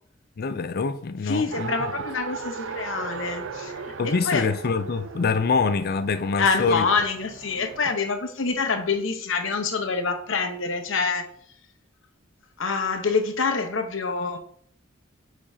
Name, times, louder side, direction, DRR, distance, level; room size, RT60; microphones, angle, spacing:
voice 1, 0.4-1.7 4.0-6.9, left 4 dB, 50° left, 0.5 m, -25 dB
voice 2, 1.2-4.5 6.4-11.3 12.6-14.4, left 4 dB, 70° left, 1.0 m, -26 dB
Race car auto racing, 1.5-7.8, right 5 dB, 70° right, 0.5 m, -37 dB
8.4 x 5.1 x 2.8 m
head